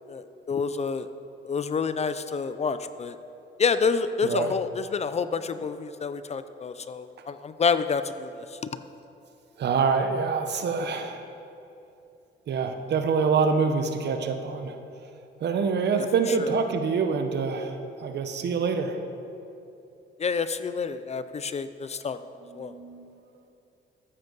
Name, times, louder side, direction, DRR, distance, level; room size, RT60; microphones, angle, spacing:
voice 1, 0.1-1.1 1.4-3.2 3.6-8.7 16.4-16.5 20.2-22.2 22.5-22.7, left 5 dB, 35° left, 12 dB, 0.4 m, -28 dB
voice 2, 4.2-4.6 9.6-11.2 12.5-14.8 15.4-19.0 22.4-23.2, right 5 dB, 60° right, 7 dB, 0.9 m, -26 dB
14.0 x 7.9 x 4.0 m, 2.8 s
cardioid pair, 90°, 20 cm